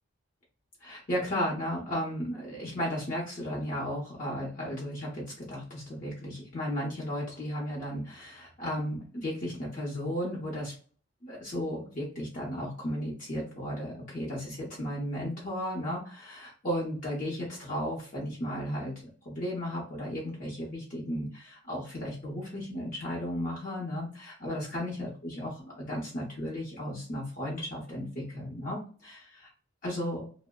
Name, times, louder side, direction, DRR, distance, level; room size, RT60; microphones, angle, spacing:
voice 1, 0.8-10.7 11.2-29.5 29.8-30.3, equal, 40° left, -5 dB, 0.8 m, -35 dB
2.6 x 2.1 x 2.2 m, 0.41 s
head